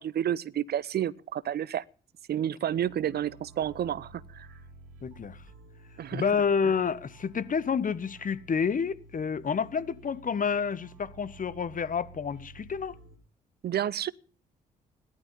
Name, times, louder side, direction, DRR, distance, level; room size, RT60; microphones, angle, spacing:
voice 1, 0.0-1.8 2.3-4.5 6.0-6.2 13.6-14.1, right 10 dB, 50° right, 0.7 m, -30 dB
sound 1, 2.7-13.2, right 3 dB, 75° right, 2.2 m, -52 dB
voice 2, 5.0-5.4 6.1-13.0, left 6 dB, 40° left, 1.3 m, -29 dB
18.0 x 11.5 x 5.4 m
hypercardioid pair, 45°, 20 cm